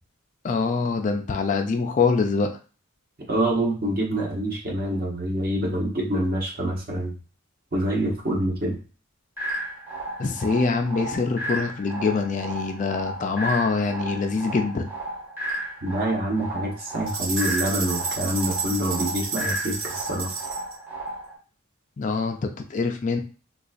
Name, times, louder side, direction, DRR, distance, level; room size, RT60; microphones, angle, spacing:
voice 1, 0.4-2.5 10.2-14.9 22.0-22.4 22.7-23.2, left 4 dB, 40° left, 6 dB, 0.3 m, -24 dB
voice 2, 3.3-7.1 7.7-8.8 15.8-20.3, right 1 dB, 45° right, -2 dB, 1.0 m, -26 dB
sound 1, 9.4-21.4, right 1 dB, 10° right, 0.8 m, -34 dB
sound 2, 17.1-20.7, right 4 dB, 70° right, 1.1 m, -31 dB
3.8 x 2.3 x 2.5 m, 0.37 s
head